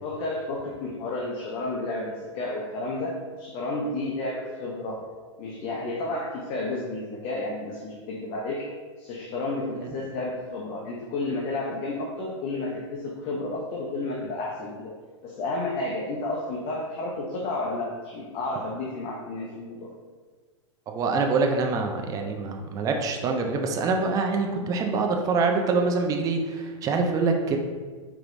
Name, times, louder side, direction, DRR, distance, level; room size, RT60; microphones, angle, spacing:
voice 1, 0.0-5.0 5.4-8.7 9.0-15.0 15.2-19.9, left 2 dB, 35° left, -3 dB, 0.6 m, -31 dB
voice 2, 20.9-27.6, right 4 dB, 20° right, 3 dB, 0.4 m, -25 dB
4.6 x 3.0 x 2.5 m, 1.5 s
hypercardioid pair, 130°, 16 cm